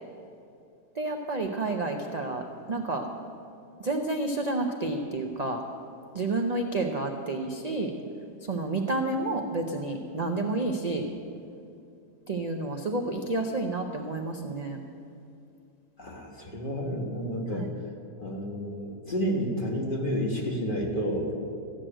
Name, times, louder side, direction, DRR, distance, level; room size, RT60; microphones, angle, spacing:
voice 1, 1.0-2.4 2.7-3.0 3.8-5.6 6.1-7.9 8.5-11.1 12.3-14.8 17.5-17.7, right 2 dB, 55° right, 3 dB, 0.4 m, -30 dB
voice 2, 16.0-17.6 18.2-21.3, equal, 35° left, 1 dB, 1.5 m, -30 dB
14.0 x 6.3 x 8.8 m, 2.6 s
omnidirectional pair, 1.7 m